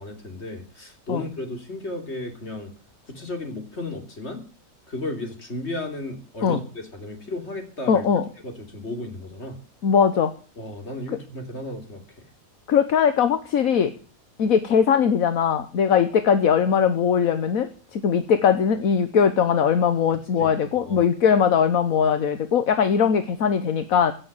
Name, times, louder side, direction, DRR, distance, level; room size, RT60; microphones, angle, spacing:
voice 1, 0.0-2.7 3.0-4.4 4.9-8.1 8.4-9.6 10.6-12.2 20.4-21.1, left 2 dB, 50° left, 4 dB, 3.5 m, -34 dB
voice 2, 7.9-8.2 9.8-10.3 12.7-13.9 14.4-24.1, left 7 dB, 70° left, 10 dB, 1.5 m, -20 dB
17.0 x 7.1 x 8.9 m, 0.38 s
omnidirectional pair, 1.5 m